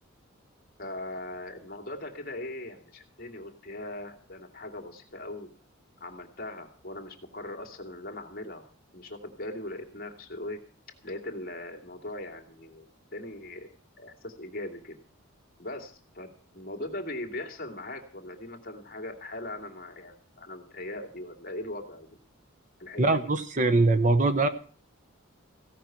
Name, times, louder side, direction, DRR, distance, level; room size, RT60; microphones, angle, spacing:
voice 1, 0.8-5.5 6.0-8.6 8.9-10.6 11.0-12.9 13.1-13.7 14.0-15.0 15.6-22.1 22.8-23.3, left 1 dB, 45° left, 4 dB, 2.5 m, -40 dB
voice 2, 23.0-24.5, right 2 dB, 40° right, 10 dB, 0.9 m, -22 dB
16.5 x 5.9 x 9.1 m, 0.43 s
head